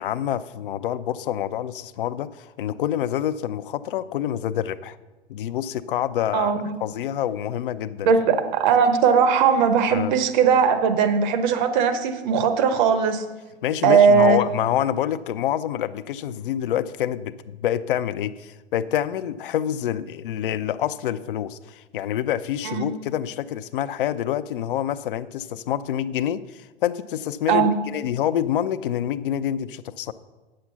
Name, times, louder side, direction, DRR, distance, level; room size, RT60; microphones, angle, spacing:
voice 1, 0.0-5.0 5.3-6.5 6.8-8.1 9.9-10.2 13.6-30.1, left 10 dB, 55° left, 14 dB, 0.6 m, -27 dB
voice 2, 6.3-6.7 8.0-13.2 13.8-14.4 22.6-22.9 27.5-27.7, right 6 dB, 45° right, 9 dB, 1.0 m, -19 dB
9.4 x 7.6 x 5.8 m, 1.2 s
figure-of-eight pair, 105°, 33 cm